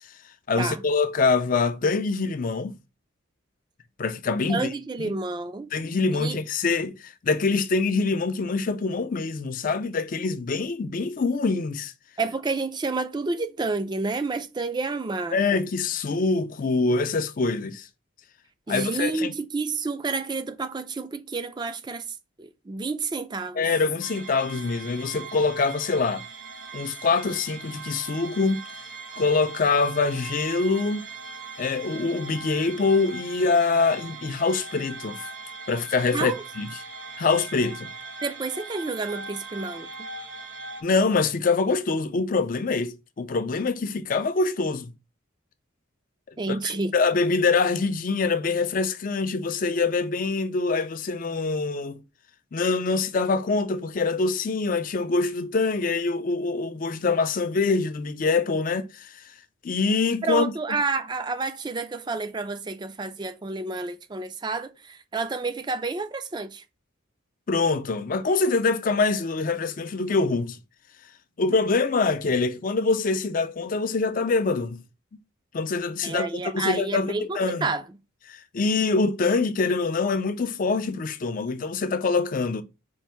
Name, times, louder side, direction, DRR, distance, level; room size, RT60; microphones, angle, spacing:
voice 1, 0.5-2.8 4.0-4.7 5.7-11.9 15.3-17.9 18.7-19.3 23.6-26.2 26.7-28.6 29.2-31.0 31.6-35.3 35.7-36.8 37.2-37.9 40.8-44.9 46.5-52.0 52.5-59.2 59.6-60.5 67.5-70.6 71.4-74.8 75.5-77.7 78.3-82.6, left 4 dB, 40° left, 0.4 m, -24 dB
voice 2, 4.5-5.7 6.1-6.4 12.2-15.6 18.7-22.0 22.4-23.6 36.1-36.4 38.2-40.1 46.4-46.9 60.2-66.6 76.0-77.8, right 3 dB, 20° right, 0.4 m, -30 dB
sound 1, 24.0-40.8, right 4 dB, 60° right, 0.9 m, -40 dB
4.5 x 2.5 x 4.3 m
head